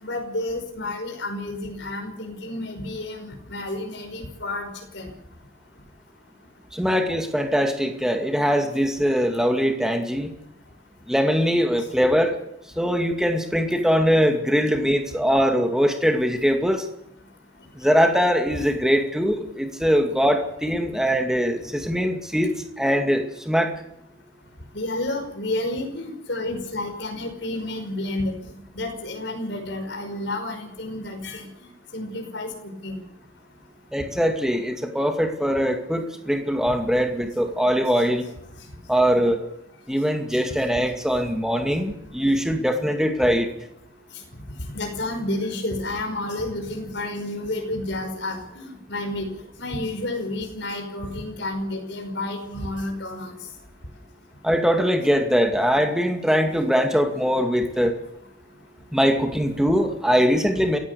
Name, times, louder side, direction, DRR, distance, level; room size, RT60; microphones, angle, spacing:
voice 1, 0.0-4.7 4.9-5.1 24.7-28.3 28.7-31.4 31.9-32.5 32.8-33.0 44.7-49.3 49.6-53.3, left 1 dB, 65° left, 4 dB, 5.4 m, -30 dB
voice 2, 6.7-10.3 11.1-12.4 12.8-16.8 17.8-23.7 33.9-38.2 38.9-39.4 39.9-43.5 54.4-57.9 58.9-60.8, equal, 5° right, 4 dB, 2.2 m, -22 dB
27.5 x 15.5 x 7.0 m, 0.82 s
head